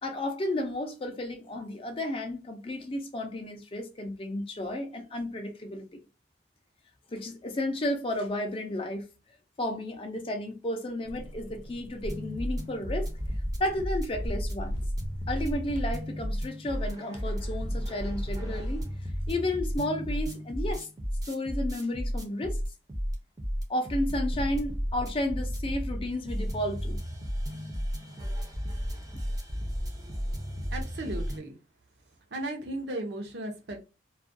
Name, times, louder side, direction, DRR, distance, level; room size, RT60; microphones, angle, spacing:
voice 1, 0.0-6.0 7.1-9.1 9.6-13.1 13.6-14.8 15.3-18.9 19.3-20.9 21.2-22.6 23.7-27.0, left 1 dB, 30° left, 0.4 m, -32 dB
sound 1, 11.0-16.1, equal, 85° left, 0.5 m, -41 dB
sound 2, 12.0-31.4, equal, 20° right, 0.5 m, -33 dB
voice 2, 29.7-30.2 30.7-31.6 32.3-33.8, right 1 dB, 70° right, 0.7 m, -36 dB
2.3 x 2.1 x 2.5 m
head